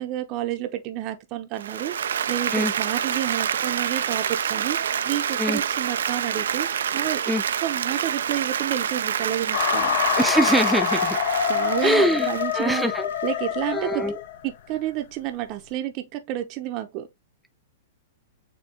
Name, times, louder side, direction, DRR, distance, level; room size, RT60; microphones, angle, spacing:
voice 1, 0.0-7.2 7.6-10.0 11.5-12.9 13.2-14.0 14.4-17.1, right 13 dB, 40° right, 0.7 m, -30 dB
Applause, 1.5-13.3, right 8 dB, 85° right, 0.4 m, -27 dB
sound 1, 9.5-14.5, left 9 dB, 60° left, 0.8 m, -25 dB
voice 2, 10.2-11.2 11.8-12.3 12.5-13.1 13.7-14.2, right 1 dB, ahead, 0.6 m, -23 dB
6.9 x 2.7 x 2.8 m
hypercardioid pair, 140°, 0 cm